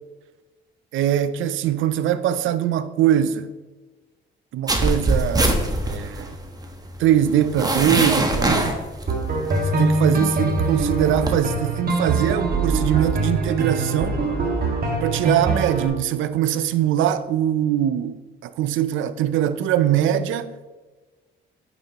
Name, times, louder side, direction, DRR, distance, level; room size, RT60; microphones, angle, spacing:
voice 1, 0.9-3.5 4.5-5.6 5.9-6.4 7.0-8.8 9.8-14.2 15.0-20.7, right 10 dB, 80° right, 0.5 m, -22 dB
sound 1, 4.7-11.4, right 1 dB, 20° right, 1.2 m, -23 dB
sound 2, 9.1-15.9, right 2 dB, 50° right, 2.0 m, -23 dB
9.4 x 7.0 x 3.0 m
cardioid pair, 90°, 20 cm